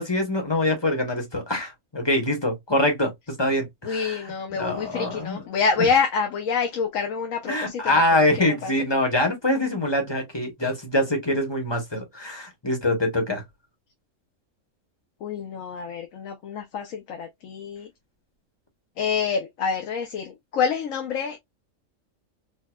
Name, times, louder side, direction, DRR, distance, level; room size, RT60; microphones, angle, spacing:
voice 1, 0.0-3.1 3.4-5.4 7.5-13.4, left 1 dB, 20° left, 0.9 m, -24 dB
voice 2, 3.8-7.9 8.4-8.7 15.2-17.9 19.0-21.4, left 5 dB, 90° left, 1.1 m, -27 dB
4.5 x 2.3 x 2.2 m
omnidirectional pair, 1.3 m